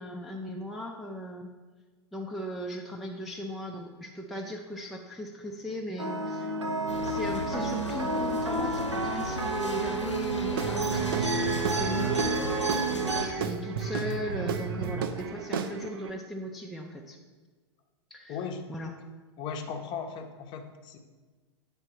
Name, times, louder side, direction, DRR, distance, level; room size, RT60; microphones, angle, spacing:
voice 1, 0.0-1.5 2.1-6.6 7.0-12.4 13.2-17.2 18.1-18.9, equal, ahead, -1 dB, 0.4 m, -37 dB
sound 1, 6.0-13.3, right 3 dB, 80° right, 0.8 m, -30 dB
sound 2, 6.9-13.3, left 2 dB, 85° left, 0.7 m, -37 dB
Guitar / Drum, 10.5-16.1, right 6 dB, 50° right, 0.5 m, -33 dB
voice 2, 18.3-18.6 19.4-21.0, left 6 dB, 30° left, 5 dB, 0.7 m, -37 dB
8.7 x 3.5 x 4.5 m, 1.3 s
figure-of-eight pair, 95°, 15 cm